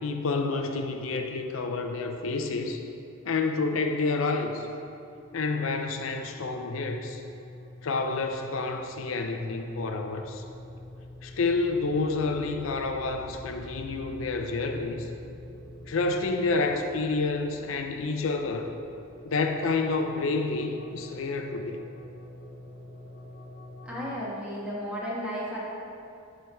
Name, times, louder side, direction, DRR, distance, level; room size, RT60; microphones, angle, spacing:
voice 1, 0.0-2.8 3.2-4.7 5.3-7.2 7.8-10.4 11.2-15.1 15.9-18.8 19.2-21.8, left 3 dB, 85° left, 4 dB, 0.5 m, -29 dB
sound 1, 5.1-24.1, left 1 dB, 50° left, 0.9 m, -46 dB
voice 2, 23.8-25.6, equal, 5° right, -7 dB, 1.5 m, -33 dB
10.5 x 4.5 x 3.5 m, 2.6 s
head